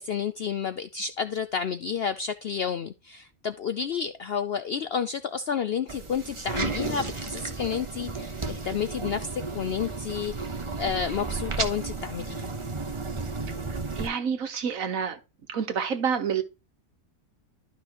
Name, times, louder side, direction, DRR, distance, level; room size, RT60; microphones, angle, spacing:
voice 1, 0.0-10.5 10.8-12.5, left 7 dB, 65° left, 0.6 m, -30 dB
sound 1, 5.9-14.1, right 3 dB, 25° right, 0.9 m, -33 dB
voice 2, 13.7-15.2 15.5-16.4, right 7 dB, 65° right, 1.4 m, -28 dB
12.0 x 5.5 x 3.0 m
omnidirectional pair, 1.6 m